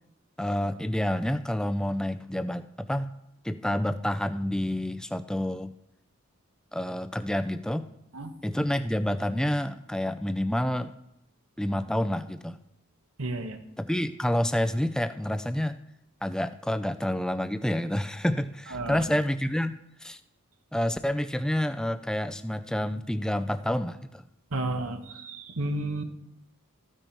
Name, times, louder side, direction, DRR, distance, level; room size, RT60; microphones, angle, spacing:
voice 1, 0.4-3.1 3.4-5.7 6.7-7.9 8.4-10.9 11.6-12.6 13.8-15.8 16.2-20.2 20.7-24.2, left 1 dB, 5° left, 10 dB, 0.4 m, -28 dB
voice 2, 13.2-13.6 18.7-19.0 24.5-26.0, right 2 dB, 85° right, 7 dB, 1.2 m, -32 dB
13.5 x 9.0 x 4.6 m, 0.83 s
head